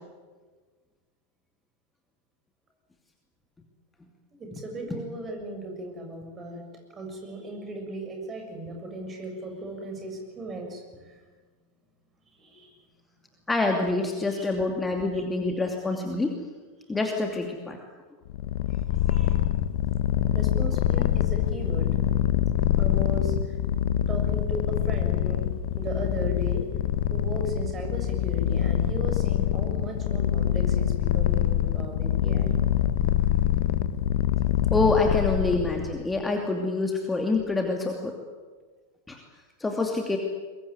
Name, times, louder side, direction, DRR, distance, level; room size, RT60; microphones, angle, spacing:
voice 1, 4.3-6.7 6.9-11.2 12.3-12.8 14.2-14.5 15.1-15.2 18.7-19.4 20.3-21.9 22.8-23.6 24.1-26.7 27.1-32.5, right 1 dB, 20° right, 3 dB, 7.1 m, -37 dB
voice 2, 13.5-16.4 16.9-17.8 34.7-38.1 39.1-39.2 39.6-40.2, left 3 dB, 10° left, 2 dB, 2.7 m, -26 dB
Purr, 18.3-36.0, left 11 dB, 50° left, 1.2 m, -25 dB
23.0 x 22.0 x 9.6 m, 1.4 s
figure-of-eight pair, 90°, 0 cm